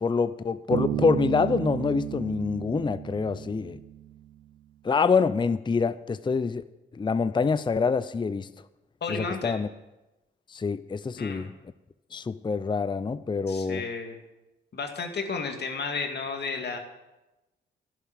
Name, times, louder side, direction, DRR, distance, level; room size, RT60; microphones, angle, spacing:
voice 1, 0.0-3.8 4.8-6.6 6.9-8.5 9.1-9.7 10.5-11.5 12.1-13.8, left 5 dB, 25° left, 14 dB, 0.5 m, -26 dB
Bass guitar, 0.7-4.2, right 13 dB, 80° right, 0.6 m, -33 dB
voice 2, 9.0-9.6 11.2-11.5 13.5-14.2 14.7-16.8, left 4 dB, 60° left, 4 dB, 2.2 m, -32 dB
12.5 x 7.3 x 8.2 m, 1.0 s
supercardioid pair, 55°, 20 cm